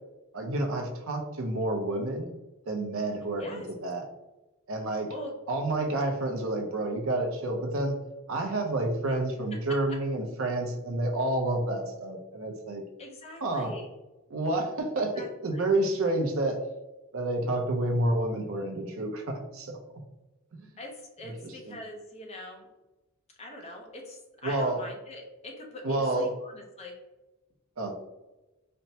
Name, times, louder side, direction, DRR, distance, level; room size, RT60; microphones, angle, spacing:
voice 1, 0.3-2.3 2.7-4.0 4.7-5.1 5.5-8.0 8.3-12.8 13.4-13.7 14.3-16.6 17.1-19.8 20.5-20.7 21.2-21.8 24.4-24.8 25.8-26.3 27.8-27.9, right 2 dB, 65° right, 2 dB, 0.6 m, -29 dB
voice 2, 3.4-3.7 5.1-5.3 9.7-10.0 13.0-13.9 15.1-15.6 20.8-22.7 23.4-27.0, left 1 dB, 30° left, 1 dB, 0.6 m, -43 dB
4.3 x 2.1 x 2.7 m, 1.0 s
head